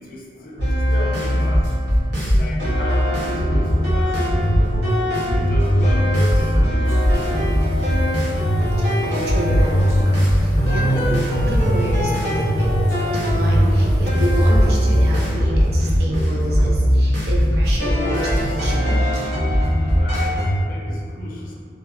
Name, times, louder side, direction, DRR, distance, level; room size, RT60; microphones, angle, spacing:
voice 1, 0.0-1.6 2.2-4.5 5.2-7.5 19.9-21.5, equal, 50° left, -3 dB, 0.4 m, -35 dB
sound 1, 0.6-20.5, equal, 85° right, 0.8 m, -19 dB
sound 2, 6.8-15.3, equal, 15° right, 0.7 m, -32 dB
voice 2, 8.8-19.0, right 1 dB, 60° right, -3 dB, 0.4 m, -29 dB
2.7 x 2.0 x 2.4 m, 2.2 s
head